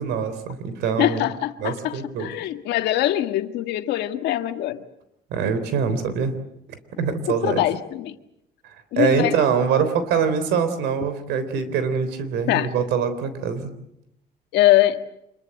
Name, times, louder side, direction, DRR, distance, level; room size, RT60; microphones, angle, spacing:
voice 1, 0.0-1.2 1.6-2.3 5.3-6.4 6.7-7.6 8.6-13.7, right 6 dB, 85° right, 3.5 m, -24 dB
voice 2, 1.0-4.8 7.3-8.2 8.9-9.4 12.5-12.7 14.5-15.0, left 14 dB, 80° left, 1.6 m, -22 dB
26.5 x 22.5 x 7.8 m
cardioid pair, 110°, 17 cm